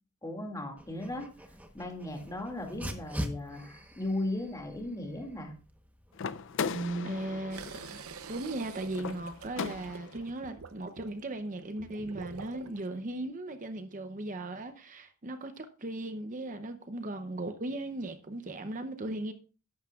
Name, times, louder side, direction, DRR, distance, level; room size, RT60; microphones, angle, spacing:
voice 1, 0.2-1.3 1.7-5.5 6.6-7.1, left 1 dB, 15° left, 2.2 m, -36 dB
Dog, 0.8-9.9, equal, 5° right, 1.0 m, -46 dB
sound 1, 6.1-10.3, left 6 dB, 55° left, 0.4 m, -38 dB
voice 2, 7.0-8.0 8.3-19.3, right 2 dB, 35° right, 0.7 m, -37 dB
sound 2, 7.5-12.9, right 6 dB, 80° right, 0.7 m, -47 dB
13.5 x 11.0 x 2.4 m
head